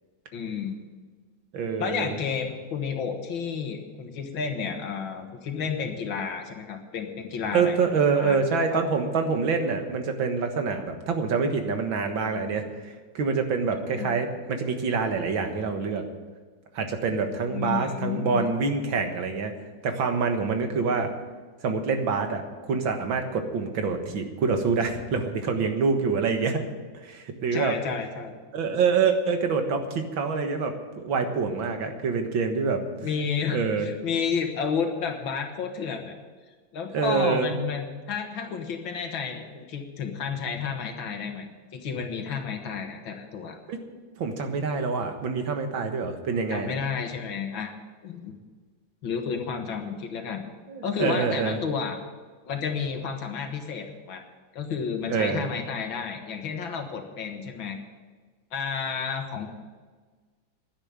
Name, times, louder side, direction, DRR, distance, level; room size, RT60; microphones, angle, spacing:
voice 1, 0.3-0.8 1.8-7.9 8.1-8.4 8.7-8.9 13.9-14.1 17.5-18.4 27.5-28.3 33.0-36.1 36.7-41.5 41.7-43.6 46.5-47.7 48.0-48.3 49.0-50.4 50.8-52.0 52.5-54.2 54.5-57.8 58.5-59.5, left 6 dB, 85° left, 4 dB, 2.2 m, -31 dB
voice 2, 1.5-2.2 7.5-16.0 16.7-19.5 19.8-21.1 21.6-22.4 22.7-26.6 27.0-27.7 28.5-32.8 33.5-33.9 36.9-37.5 43.7-43.8 44.2-46.7 50.7-51.6 55.1-55.5, right 5 dB, 90° right, 5 dB, 2.2 m, -26 dB
11.0 x 10.5 x 8.8 m, 1.4 s
omnidirectional pair, 2.1 m